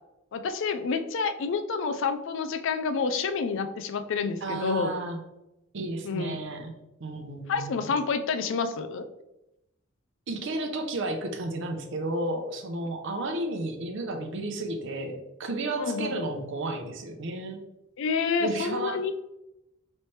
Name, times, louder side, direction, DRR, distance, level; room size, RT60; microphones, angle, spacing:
voice 1, 0.3-4.9 6.0-6.4 7.5-9.0 15.8-16.1 18.0-19.1, left 5 dB, 65° left, 9 dB, 0.4 m, -28 dB
voice 2, 4.4-5.2 5.7-6.7 7.0-7.9 10.3-17.6 18.4-19.1, right 2 dB, 65° right, 4 dB, 0.6 m, -32 dB
3.2 x 3.2 x 4.2 m, 0.89 s
head